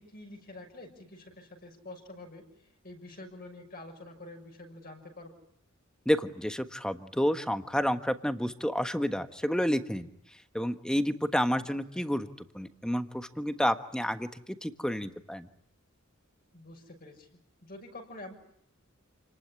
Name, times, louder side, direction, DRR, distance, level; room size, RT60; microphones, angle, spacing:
voice 1, 0.0-5.3 11.6-11.7 16.5-17.3 17.6-18.3, left 2 dB, 45° left, 3 dB, 6.4 m, -47 dB
voice 2, 6.0-10.1 10.5-15.5, equal, 5° left, 9 dB, 1.4 m, -30 dB
29.0 x 19.5 x 9.8 m, 0.73 s
head